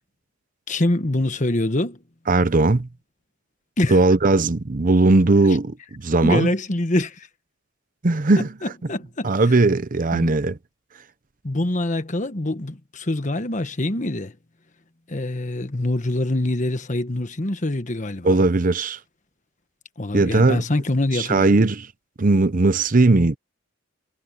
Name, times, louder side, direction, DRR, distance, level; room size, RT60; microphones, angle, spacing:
voice 1, 0.7-2.0 3.8-4.0 6.2-7.3 8.6-9.3 10.1-10.4 11.4-14.3 15.1-18.4 20.0-21.5, left 1 dB, 40° left, 1.3 m, -25 dB
voice 2, 2.3-2.9 3.9-6.5 8.0-8.5 9.2-10.6 18.2-19.0 20.1-20.6 21.1-21.9 22.2-23.4, right 2 dB, 40° right, 0.7 m, -18 dB
head